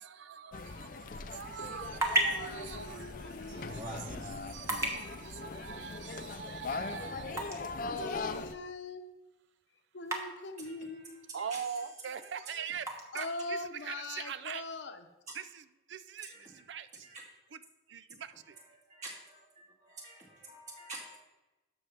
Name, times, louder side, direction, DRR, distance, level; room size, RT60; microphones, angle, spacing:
voice 1, 0.0-7.6 11.3-14.6 15.3-17.1 17.5-17.6 17.9-18.6, right 7 dB, 75° right, 0.4 m, -43 dB
sound 1, 0.5-8.5, left 3 dB, 45° left, 0.4 m, -41 dB
sound 2, 1.5-15.3, right 1 dB, 15° right, 1.0 m, -40 dB
voice 2, 1.6-5.0 7.9-9.2 9.9-11.3 13.1-15.1, left 2 dB, 75° left, 0.8 m, -43 dB
voice 3, 3.8-4.3 10.8-10.9 11.4-11.6 12.0-12.2 12.5-12.6 16.3-16.6 17.0-17.2 18.5-18.6 18.9-19.4 19.8-21.2, right 2 dB, 40° right, 2.2 m, -47 dB
12.0 x 6.3 x 3.4 m
head